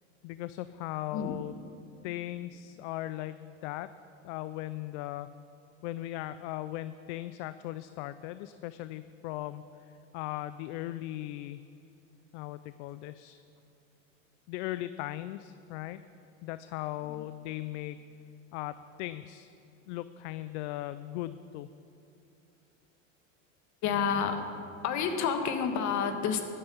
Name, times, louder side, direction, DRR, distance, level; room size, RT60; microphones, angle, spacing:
voice 1, 0.2-1.6 2.0-3.9 4.2-5.3 5.8-11.6 12.3-13.4 14.5-16.0 16.4-18.1 18.5-19.5 19.9-21.7, left 15 dB, 65° left, 13 dB, 0.5 m, -38 dB
voice 2, 23.8-24.4 24.8-26.4, left 6 dB, 50° left, 7 dB, 1.5 m, -29 dB
13.5 x 9.4 x 5.5 m, 2.7 s
supercardioid pair, 110°, 38 cm